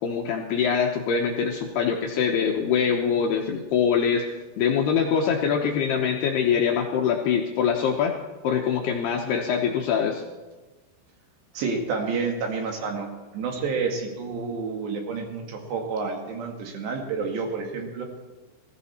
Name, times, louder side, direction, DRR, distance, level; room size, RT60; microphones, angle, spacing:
voice 1, 0.0-8.1 8.4-10.2, left 7 dB, 75° left, 1 dB, 2.5 m, -24 dB
voice 2, 11.5-18.1, right 4 dB, 65° right, 2 dB, 3.9 m, -29 dB
19.5 x 15.0 x 4.3 m, 1.2 s
omnidirectional pair, 5.7 m